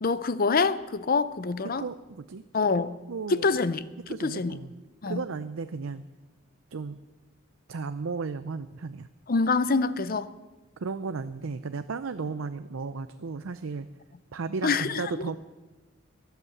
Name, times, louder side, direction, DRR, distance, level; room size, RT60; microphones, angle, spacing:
voice 1, 0.0-1.8 2.5-3.0 3.3-3.9 4.2-4.6 5.0-5.2 9.3-10.3 14.6-15.0, left 4 dB, 45° left, 0.6 m, -25 dB
voice 2, 1.6-2.4 3.1-3.5 4.1-4.7 5.1-6.0 6.7-7.0 7.7-9.1 10.8-13.9 14.3-15.4, right 4 dB, 90° right, 0.6 m, -34 dB
23.0 x 8.2 x 7.1 m
head